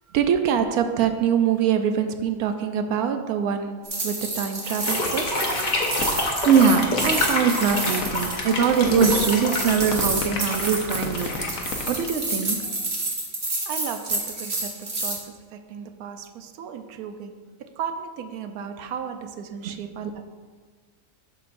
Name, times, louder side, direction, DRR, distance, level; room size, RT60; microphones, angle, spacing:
voice 1, 0.1-5.4 13.7-17.3 17.6-20.2, right 8 dB, 90° right, 8 dB, 1.1 m, -27 dB
sound 1, 3.8-15.2, right 2 dB, 40° right, 1.4 m, -29 dB
sound 2, 4.6-12.6, left 2 dB, 35° left, 1.0 m, -28 dB
sound 3, 6.0-6.2 6.5-6.6 7.0-8.3 8.5-9.2 9.5-12.0, left 5 dB, 65° left, 1.2 m, -31 dB
voice 2, 6.5-11.4 11.9-12.6 19.6-19.8, right 6 dB, 65° right, 8 dB, 0.8 m, -22 dB
10.5 x 6.6 x 2.5 m, 1.5 s
omnidirectional pair, 1.6 m